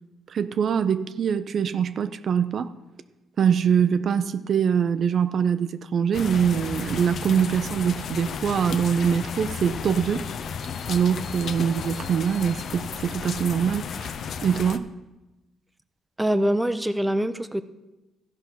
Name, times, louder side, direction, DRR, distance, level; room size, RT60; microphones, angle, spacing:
voice 1, 0.3-2.7 3.4-10.3 10.9-13.9 14.4-14.9, right 7 dB, 55° right, 0.5 m, -23 dB
sound 1, 6.1-14.8, left 6 dB, 60° left, 0.6 m, -33 dB
voice 2, 16.2-17.6, right 1 dB, 10° right, 0.6 m, -24 dB
14.0 x 5.5 x 6.1 m
cardioid pair, 90°, 0 cm